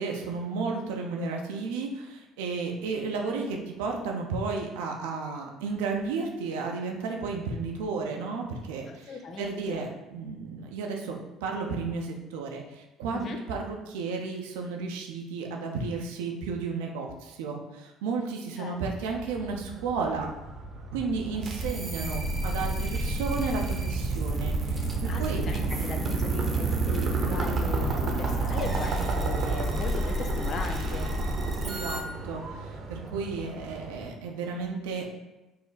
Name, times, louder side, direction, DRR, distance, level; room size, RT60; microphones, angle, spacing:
voice 1, 0.0-20.3 20.9-25.4 31.6-35.1, right 4 dB, 80° right, 1 dB, 0.7 m, -33 dB
voice 2, 8.9-9.9 13.1-13.4 18.6-18.8 25.1-31.1, left 4 dB, 50° left, 4 dB, 0.7 m, -38 dB
sound 1, 19.0-34.1, right 4 dB, 50° right, 0.9 m, -32 dB
sound 2, 21.4-32.0, equal, 25° right, 1.0 m, -33 dB
5.3 x 2.0 x 4.1 m, 1.0 s
hypercardioid pair, 60°, 0 cm